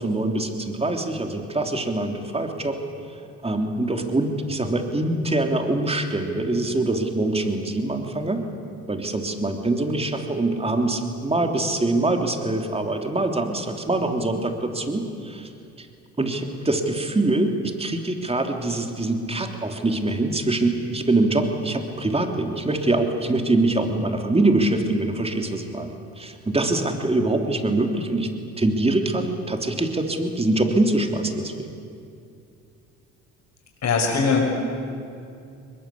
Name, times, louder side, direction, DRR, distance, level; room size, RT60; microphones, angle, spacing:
voice 1, 0.0-2.8 3.4-8.4 8.9-15.5 15.8-15.9 16.2-28.3 28.6-31.7, right 2 dB, 15° right, 5 dB, 3.2 m, -24 dB
voice 2, 33.8-34.6, left 4 dB, 50° left, 0 dB, 6.5 m, -21 dB
22.5 x 20.5 x 8.5 m, 2.5 s
supercardioid pair, 70°, 34 cm